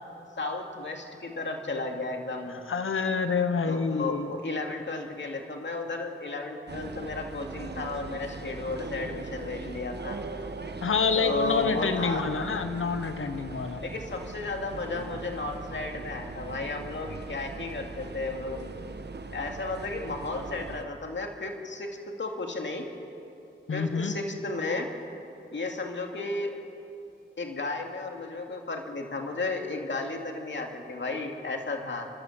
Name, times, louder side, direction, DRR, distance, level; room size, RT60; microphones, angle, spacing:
voice 1, 0.4-2.6 3.7-10.2 11.2-12.3 13.8-18.8 19.3-22.9 23.7-24.9 25.5-26.5 27.4-32.1, left 3 dB, 65° left, 2 dB, 2.4 m, -34 dB
voice 2, 2.7-4.3 10.8-13.8 23.7-24.1, left 5 dB, 85° left, 9 dB, 1.3 m, -27 dB
sound 1, 6.7-20.8, right 3 dB, 55° right, 1.2 m, -40 dB
29.5 x 12.5 x 7.4 m, 2.8 s
cardioid pair, 55°, 21 cm